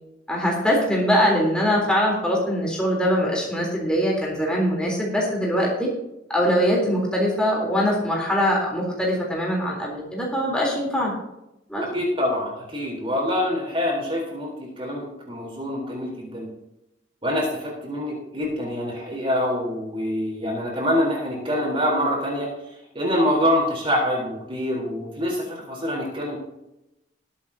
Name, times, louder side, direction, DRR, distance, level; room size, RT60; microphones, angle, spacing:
voice 1, 0.3-5.9 6.3-11.1 11.7-11.8, equal, 5° left, -3 dB, 3.7 m, -22 dB
voice 2, 11.9-16.5 17.2-22.5 22.9-26.4, equal, 25° right, -2 dB, 3.9 m, -25 dB
20.5 x 8.3 x 2.9 m, 0.89 s
head